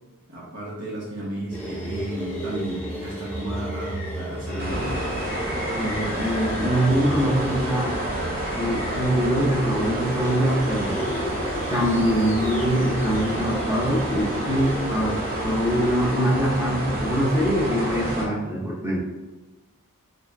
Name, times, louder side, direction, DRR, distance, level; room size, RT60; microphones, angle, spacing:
voice 1, 0.3-5.0, right 1 dB, 70° right, -6 dB, 1.0 m, -33 dB
sound 1, 1.5-16.2, equal, 5° left, 1.3 m, -33 dB
sound 2, 4.6-18.3, right 1 dB, 40° right, 0.8 m, -29 dB
voice 2, 5.7-8.0 8.6-11.0 11.7-15.2 15.4-19.0, equal, 15° right, -4 dB, 0.9 m, -23 dB
3.9 x 3.9 x 2.3 m, 1.1 s
head